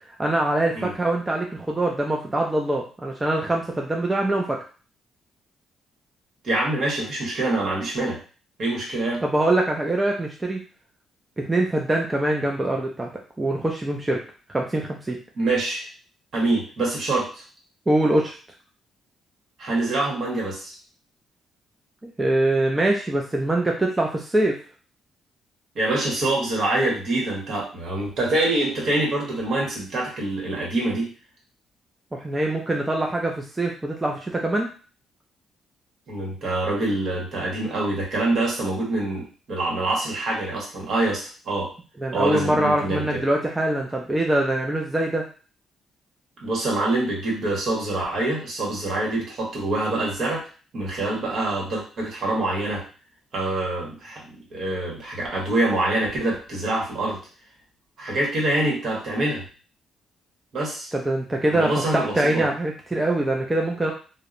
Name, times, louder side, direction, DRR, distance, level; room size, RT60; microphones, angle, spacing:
voice 1, 0.2-4.6 9.2-10.6 11.4-13.1 13.4-14.2 14.5-15.2 17.9-18.4 22.0-24.6 32.1-34.7 42.0-45.2 60.9-63.9, right 1 dB, 15° right, 0 dB, 0.4 m, -23 dB
voice 2, 6.4-8.2 8.6-9.2 15.3-15.9 16.3-17.4 19.6-20.7 25.7-31.1 36.1-41.7 42.1-43.2 46.4-50.4 50.7-52.8 53.3-54.2 54.5-57.2 58.0-59.4 60.5-60.9 61.5-62.5, right 2 dB, 60° right, -3 dB, 1.2 m, -25 dB
2.7 x 2.0 x 2.5 m, 0.38 s
cardioid pair, 90°, 0 cm